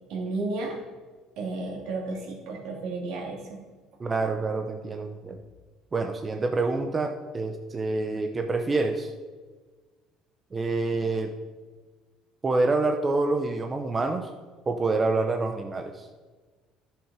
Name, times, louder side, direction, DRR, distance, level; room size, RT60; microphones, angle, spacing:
voice 1, 0.1-0.7 1.4-3.6, right 3 dB, 75° right, -1 dB, 2.6 m, -32 dB
voice 2, 4.0-5.4 5.9-9.1 10.5-11.3 12.4-14.3 14.7-16.1, right 3 dB, 25° right, 4 dB, 0.8 m, -27 dB
10.5 x 6.5 x 4.9 m, 1.4 s
cardioid pair, 105°, 0 cm